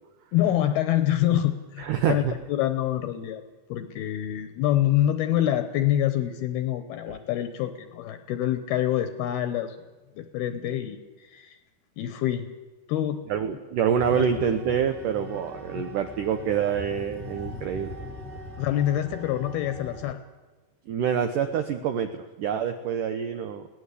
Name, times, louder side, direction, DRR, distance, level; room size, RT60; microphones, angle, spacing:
voice 1, 0.3-3.4 3.7-9.8 10.2-11.6 12.0-12.5 12.9-13.2 14.1-14.2 18.6-20.2, left 12 dB, 75° left, 10 dB, 2.6 m, -26 dB
voice 2, 1.8-2.3 7.1-7.2 13.3-18.0 20.9-23.7, right 8 dB, 90° right, 8 dB, 1.8 m, -26 dB
sound 1, 14.0-20.1, left 1 dB, 15° right, 2.2 m, -40 dB
21.5 x 17.5 x 8.3 m, 1.2 s
omnidirectional pair, 5.1 m